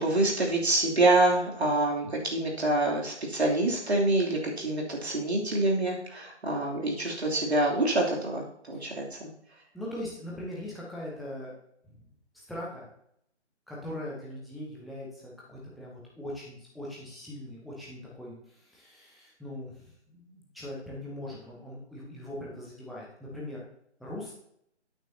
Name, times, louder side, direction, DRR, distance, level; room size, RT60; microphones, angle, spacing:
voice 1, 0.0-9.3, right 2 dB, 65° right, -2 dB, 2.9 m, -26 dB
voice 2, 9.7-11.5 11.8-12.0 12.3-12.9 13.7-23.6 24.0-24.3, left 1 dB, ahead, -6 dB, 0.4 m, -41 dB
12.5 x 9.0 x 2.7 m, 0.72 s
figure-of-eight pair, 145°, 35 cm